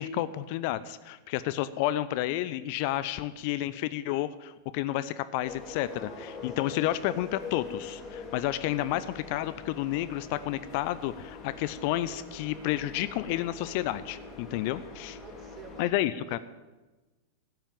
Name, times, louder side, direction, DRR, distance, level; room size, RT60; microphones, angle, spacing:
voice 1, 0.0-15.2 15.8-16.4, left 14 dB, 45° left, 15 dB, 0.6 m, -31 dB
sound 1, 5.4-15.8, left 4 dB, 30° left, 3.8 m, -44 dB
voice 2, 15.2-16.0 16.3-16.4, right 6 dB, 30° right, 7 dB, 1.9 m, -49 dB
14.0 x 8.9 x 9.0 m, 1.2 s
figure-of-eight pair, 90°, 0 cm